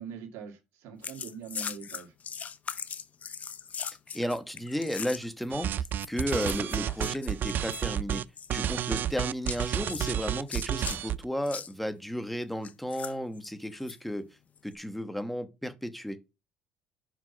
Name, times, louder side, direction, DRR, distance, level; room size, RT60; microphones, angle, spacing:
voice 1, 0.0-2.1, right 6 dB, 75° right, 1.9 m, -43 dB
sound 1, 1.0-5.4 5.8-7.9 8.2-8.5 9.4-11.0 11.4-11.7 12.6-14.0 14.6-14.7, left 7 dB, 35° left, 0.6 m, -40 dB
voice 2, 4.1-8.2 8.5-14.2 14.6-16.2, equal, ahead, 1.1 m, -33 dB
sound 2, 5.5-8.2 8.5-11.2, right 10 dB, 50° right, 0.4 m, -31 dB
5.6 x 5.0 x 5.8 m
cardioid pair, 110°, 4 cm